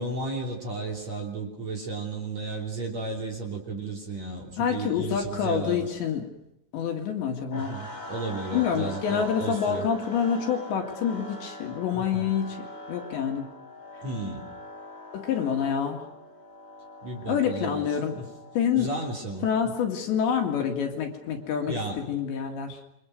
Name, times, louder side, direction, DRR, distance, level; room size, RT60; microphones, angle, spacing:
voice 1, 0.0-5.9 7.5-9.9 11.9-12.3 14.0-14.4 17.0-18.3 18.8-19.7 21.7-22.0, right 3 dB, 40° right, -1 dB, 3.8 m, -34 dB
voice 2, 4.6-6.3 6.7-7.8 8.5-13.5 15.1-16.1 17.3-18.1 18.6-18.9 19.4-22.8, left 7 dB, 65° left, 2 dB, 4.1 m, -27 dB
sound 1, 7.5-21.6, left 1 dB, 10° left, 2.9 m, -43 dB
28.5 x 24.5 x 6.6 m, 0.85 s
omnidirectional pair, 5.8 m